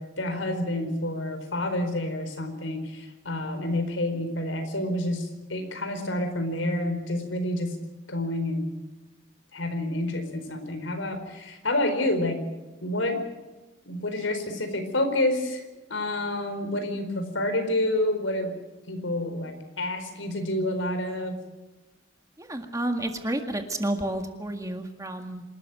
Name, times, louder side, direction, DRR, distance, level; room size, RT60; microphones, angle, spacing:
voice 1, 0.0-7.8 8.1-8.7 9.5-12.4 12.8-13.3 13.9-15.6 15.9-18.6 18.9-21.4, left 1 dB, 80° left, 7 dB, 4.5 m, -28 dB
voice 2, 22.4-25.4, right 1 dB, 15° right, 5 dB, 1.9 m, -30 dB
27.0 x 13.5 x 9.3 m, 1.1 s
head